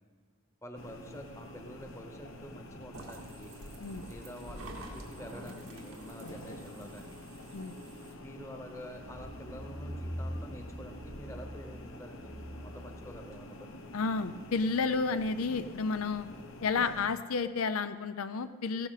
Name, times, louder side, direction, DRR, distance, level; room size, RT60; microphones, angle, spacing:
voice 1, 0.6-3.5 4.1-7.2 8.2-13.8, equal, 15° left, 5 dB, 1.0 m, -48 dB
sound 1, 0.8-17.1, left 1 dB, 65° left, 1.1 m, -48 dB
sound 2, 2.9-8.1, right 2 dB, 85° right, 2.0 m, -49 dB
sound 3, 9.0-13.4 13.9-14.0, equal, 5° right, 0.6 m, -43 dB
voice 2, 13.9-16.3 16.6-18.9, left 4 dB, 85° left, 11 dB, 0.5 m, -31 dB
15.5 x 12.5 x 4.1 m, 1.5 s
head